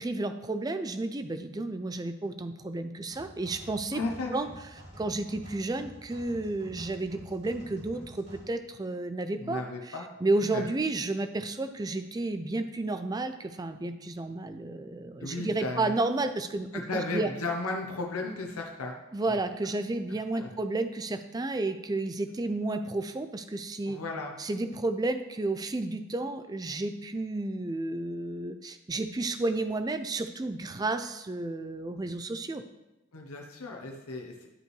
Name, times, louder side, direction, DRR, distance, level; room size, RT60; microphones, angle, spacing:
voice 1, 0.0-4.0 4.3-4.5 5.0-9.6 10.2-17.3 19.1-24.0 24.4-32.6, right 2 dB, 20° right, 9 dB, 0.3 m, -32 dB
sound 1, 3.1-8.4, equal, 50° right, 2.9 m, -49 dB
voice 2, 3.9-4.4 9.4-10.1 10.5-10.6 14.7-14.8 15.2-16.0 16.7-18.9 19.3-19.4 20.3-20.5 23.8-24.3 33.1-34.5, left 3 dB, 90° left, 1 dB, 0.9 m, -35 dB
11.5 x 5.2 x 3.2 m, 0.98 s
head